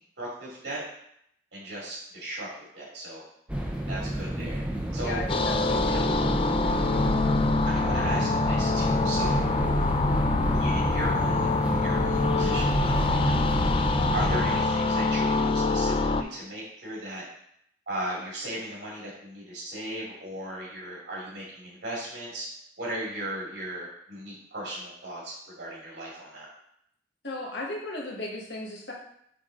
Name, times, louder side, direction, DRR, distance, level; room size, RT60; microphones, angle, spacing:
voice 1, 0.2-0.8 1.5-2.5 2.7-3.2 3.9-4.6 4.9-5.2 5.8-6.0 7.6-9.4 10.5-13.5 14.1-17.2 17.9-22.5 22.8-26.5, right 1 dB, 90° right, -6 dB, 2.3 m, -37 dB
sound 1, 3.5-14.6, right 1 dB, 5° right, 0.7 m, -30 dB
voice 2, 5.0-6.2 27.2-28.9, left 2 dB, 80° left, -2 dB, 1.6 m, -36 dB
sound 2, 5.3-16.2, left 3 dB, 30° left, 0.3 m, -25 dB
7.6 x 3.8 x 3.8 m, 0.72 s
head